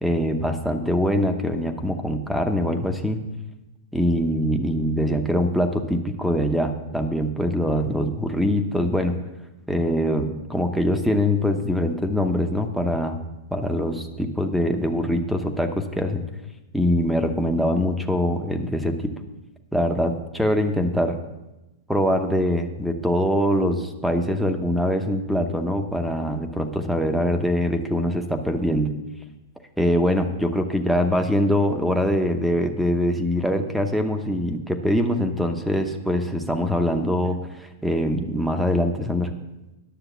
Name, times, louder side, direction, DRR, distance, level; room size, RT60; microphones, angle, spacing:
voice 1, 0.0-3.2 3.9-9.2 9.7-13.2 13.5-16.2 16.7-19.1 19.7-21.2 21.9-28.9 29.8-39.3, equal, ahead, 6 dB, 0.8 m, -23 dB
10.0 x 6.7 x 6.8 m, 1.0 s
hypercardioid pair, 140°, 0 cm